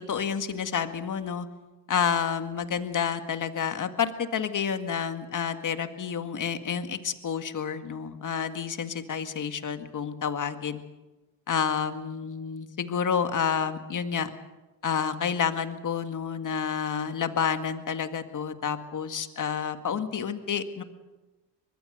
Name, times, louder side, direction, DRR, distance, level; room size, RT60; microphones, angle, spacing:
voice 1, 0.0-1.5 1.9-10.8 11.5-14.3 14.8-20.8, left 7 dB, 50° left, 8 dB, 2.0 m, -29 dB
24.5 x 20.5 x 6.7 m, 1.1 s
supercardioid pair, 70°, 41 cm